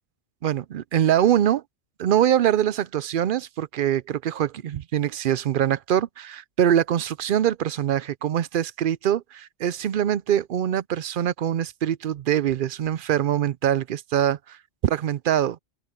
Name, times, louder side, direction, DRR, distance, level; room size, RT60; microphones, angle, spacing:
voice 1, 0.4-1.6 2.0-14.6 14.8-15.6, right 10 dB, 60° right, 0.6 m, -23 dB
open air
omnidirectional pair, 1.2 m